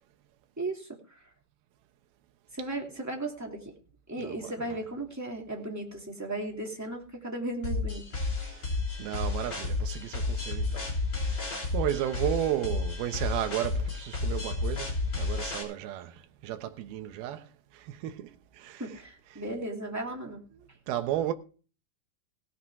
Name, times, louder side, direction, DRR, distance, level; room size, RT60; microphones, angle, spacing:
voice 1, 0.6-1.2 2.5-3.7 4.1-8.0 18.8-20.4, right 2 dB, 5° right, 1.7 m, -36 dB
voice 2, 4.2-4.8 8.4-10.9 11.2-17.5 17.7-18.8 20.9-21.3, right 12 dB, 70° right, 2.8 m, -34 dB
sound 1, 7.6-15.6, left 3 dB, 30° left, 4.1 m, -31 dB
17.5 x 8.6 x 4.8 m
omnidirectional pair, 4.8 m